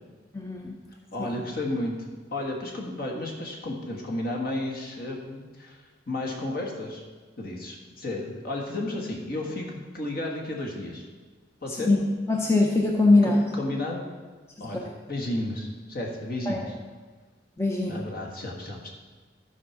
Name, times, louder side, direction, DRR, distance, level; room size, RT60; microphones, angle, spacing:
voice 1, 0.3-0.7 1.2-1.3 11.9-12.0 12.3-13.4 14.6-14.7 16.5-16.6 17.6-18.0, left 2 dB, 15° left, 0 dB, 0.7 m, -22 dB
voice 2, 1.1-1.9 2.3-5.8 6.1-7.0 7.4-11.1 11.6-11.9 13.2-14.0 14.6-16.8 17.9-18.9, left 1 dB, 55° left, 0 dB, 1.6 m, -32 dB
12.0 x 4.7 x 5.9 m, 1.4 s
head